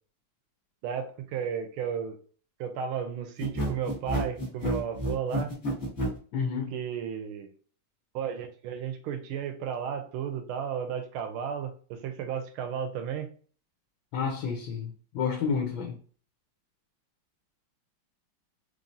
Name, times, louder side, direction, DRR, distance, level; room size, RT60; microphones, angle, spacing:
voice 1, 0.8-2.2 2.6-5.5 6.7-7.5 8.1-13.3, right 8 dB, 80° right, 1.5 m, -33 dB
sound 1, 3.4-6.2, right 1 dB, 35° left, 1.6 m, -29 dB
voice 2, 6.3-6.7 14.1-16.0, left 6 dB, 75° left, 1.4 m, -30 dB
4.0 x 3.1 x 2.6 m
omnidirectional pair, 2.3 m